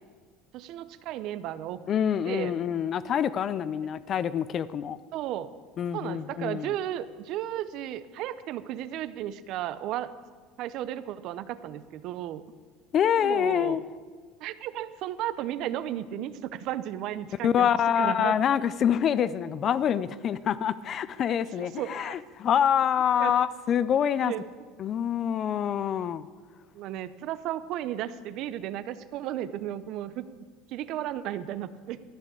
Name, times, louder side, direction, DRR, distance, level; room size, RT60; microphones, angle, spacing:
voice 1, 0.5-1.8 2.2-2.5 5.1-5.5 5.9-10.1 10.6-12.4 13.2-13.8 14.4-17.7 18.0-18.4 21.6-22.2 23.2-23.3 24.2-24.4 26.7-30.3 30.7-32.0, right 12 dB, 50° right, 14 dB, 0.6 m, -34 dB
voice 2, 1.9-5.0 5.8-6.7 12.9-13.8 17.4-24.3 24.8-26.3, left 9 dB, 35° left, 16 dB, 0.4 m, -26 dB
13.5 x 6.6 x 8.6 m, 1.5 s
cardioid pair, 150°, 0 cm